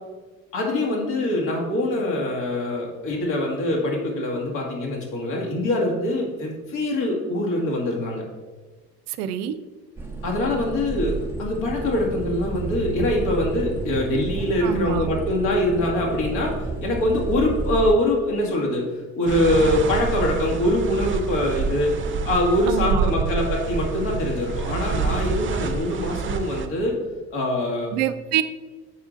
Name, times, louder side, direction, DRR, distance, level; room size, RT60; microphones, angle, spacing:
voice 1, 0.5-8.2 10.2-16.5 16.8-18.9 19.1-21.9 22.3-27.0 27.3-27.9, left 1 dB, 65° left, -1 dB, 2.0 m, -23 dB
voice 2, 9.1-9.5 14.6-15.1 22.7-23.1 27.9-28.4, right 10 dB, 75° right, 11 dB, 0.6 m, -26 dB
sound 1, 10.0-17.9, right 3 dB, 5° right, 0.9 m, -31 dB
sound 2, 19.3-26.7, right 5 dB, 25° right, 0.6 m, -27 dB
7.0 x 4.9 x 3.8 m, 1.3 s
hypercardioid pair, 60°, 47 cm